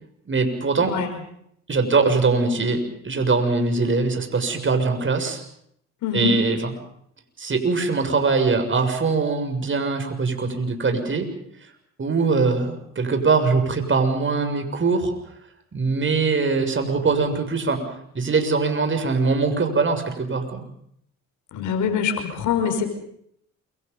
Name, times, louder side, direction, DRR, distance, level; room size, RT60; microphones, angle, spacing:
voice 1, 0.3-0.9 1.7-2.8 3.0-5.4 6.1-6.7 7.4-11.3 12.0-15.1 15.7-17.8 18.2-20.6, right 4 dB, 40° right, 6 dB, 6.9 m, -22 dB
voice 2, 6.0-6.3 21.5-22.9, left 7 dB, 80° left, 6 dB, 5.6 m, -24 dB
28.5 x 24.0 x 5.5 m, 0.71 s
supercardioid pair, 65°, 30 cm